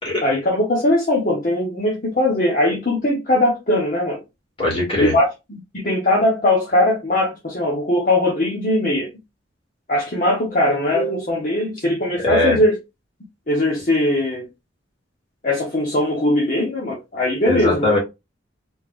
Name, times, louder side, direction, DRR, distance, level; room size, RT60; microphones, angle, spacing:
voice 1, 0.2-4.2 5.0-9.1 9.9-12.8 13.5-14.5 15.4-17.9, left 1 dB, 45° left, 1.1 m, -20 dB
voice 2, 4.6-5.1 12.2-12.6 17.5-18.0, left 1 dB, 30° left, 2.2 m, -19 dB
4.1 x 3.5 x 2.5 m
head